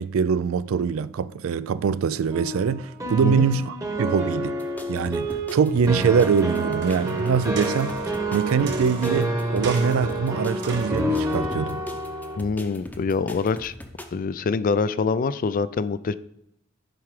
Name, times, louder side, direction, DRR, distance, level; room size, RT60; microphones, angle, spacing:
voice 1, 0.0-4.6 4.9-11.8, right 6 dB, 75° right, 0.4 m, -23 dB
sound 1, 2.3-12.4, right 1 dB, 15° right, 1.1 m, -28 dB
sound 2, 4.6-14.1, left 1 dB, 10° left, 0.7 m, -40 dB
sound 3, 6.8-7.1 7.6-8.1 8.7-9.2 9.6-10.2 10.6-11.1 11.7-11.8, right 4 dB, 60° right, 1.4 m, -37 dB
voice 2, 12.4-13.7 14.1-16.1, left 4 dB, 40° left, 0.3 m, -25 dB
10.5 x 4.8 x 4.8 m
head